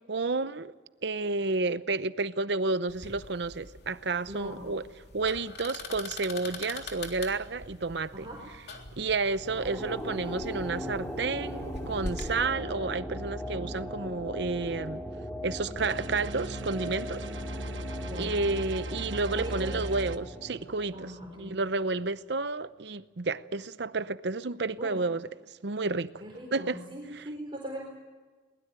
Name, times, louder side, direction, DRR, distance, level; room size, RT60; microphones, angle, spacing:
voice 1, 0.1-0.7 1.0-4.8 5.1-8.3 9.0-15.0 15.4-17.2 18.2-21.1 21.4-25.3 25.6-26.1 26.5-26.8 27.1-27.2, right 3 dB, 65° right, 0.8 m, -31 dB
sound 1, 2.9-12.3, left 2 dB, 60° left, 3.4 m, -43 dB
voice 2, 4.3-4.6 8.1-8.4 9.5-10.3 18.0-18.3 19.3-19.7 20.9-21.5 24.8-25.0 26.2-27.9, equal, 25° right, 4.3 m, -40 dB
sound 2, 9.4-21.9, equal, 10° left, 2.7 m, -39 dB
sound 3, 15.8-20.2, right 1 dB, 85° right, 1.1 m, -38 dB
22.5 x 20.5 x 8.9 m
head